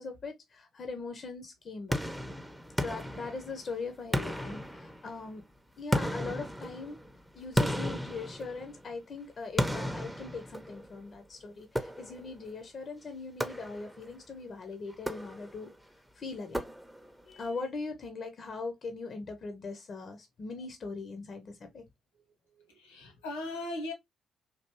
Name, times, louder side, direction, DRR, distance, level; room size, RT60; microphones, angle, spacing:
voice 1, 0.0-2.0 2.8-5.4 5.8-7.0 7.3-15.7 16.2-16.6 17.2-21.8, left 4 dB, 45° left, 0.6 m, -40 dB
sound 1, 1.9-3.7 4.1-5.3 5.9-8.9 9.6-11.0 11.8-12.4 13.4-14.1 14.9-15.7 16.5-17.2, equal, 5° right, 0.6 m, -34 dB
voice 2, 22.1-23.9, left 2 dB, 80° left, 1.1 m, -40 dB
3.3 x 2.5 x 2.8 m
figure-of-eight pair, 40°, 0 cm